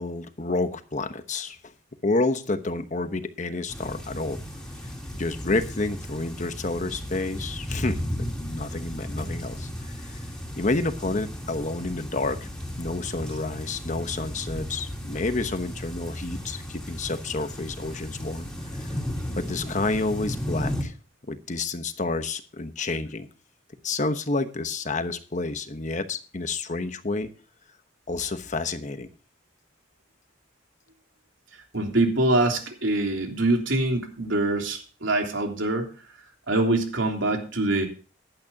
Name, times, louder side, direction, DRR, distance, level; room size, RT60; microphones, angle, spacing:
voice 1, 0.0-1.6 2.0-4.4 5.2-9.7 10.0-10.2 10.6-12.5 12.8-18.5 18.8-18.9 19.3-20.9 21.3-23.3 23.8-27.3 28.1-29.1, left 3 dB, 40° left, 9 dB, 1.1 m, -29 dB
sound 1, 3.7-20.8, equal, 5° left, 3.1 m, -35 dB
voice 2, 31.7-35.9 36.5-37.9, right 2 dB, 90° right, 3 dB, 3.2 m, -24 dB
15.5 x 11.5 x 2.8 m, 0.37 s
head